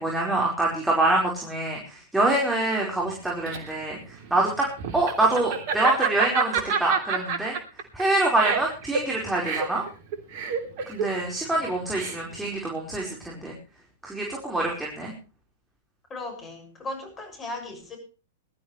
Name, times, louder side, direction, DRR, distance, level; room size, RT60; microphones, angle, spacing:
voice 1, 0.0-4.7 4.9-7.5 7.9-9.8 10.9-13.5 14.0-15.1, right 2 dB, 5° right, -2 dB, 4.8 m, -25 dB
Laughter, 3.1-12.5, right 6 dB, 50° right, 3.2 m, -28 dB
voice 2, 16.1-18.0, left 2 dB, 20° left, 5 dB, 7.0 m, -36 dB
21.0 x 13.0 x 3.3 m, 0.35 s
figure-of-eight pair, 100°, 0 cm